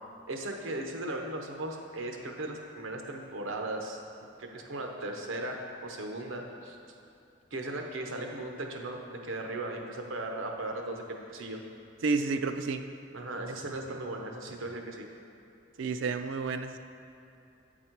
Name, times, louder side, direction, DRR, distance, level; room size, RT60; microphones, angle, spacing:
voice 1, 0.3-4.0 4.4-6.8 7.5-11.6 13.1-15.1, right 2 dB, 85° right, 2 dB, 0.8 m, -37 dB
voice 2, 12.0-12.8 15.8-16.8, right 4 dB, 70° right, 8 dB, 0.4 m, -30 dB
8.6 x 4.2 x 4.5 m, 2.8 s
head